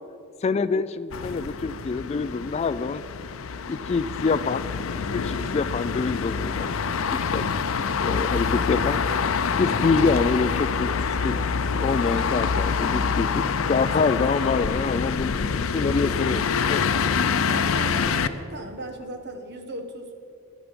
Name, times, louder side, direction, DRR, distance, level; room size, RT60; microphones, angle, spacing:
voice 1, 0.4-3.0 3.6-4.7 5.1-6.8 7.1-7.4 8.0-9.0 9.6-10.9 11.2-11.3 11.8-15.3 15.7-16.9, left 4 dB, 30° left, 14 dB, 0.3 m, -26 dB
sound 1, 1.1-18.3, left 5 dB, 85° left, 0.6 m, -26 dB
voice 2, 13.8-14.5 17.4-20.1, right 1 dB, 55° right, 6 dB, 1.3 m, -38 dB
14.0 x 11.5 x 5.2 m, 2.5 s
head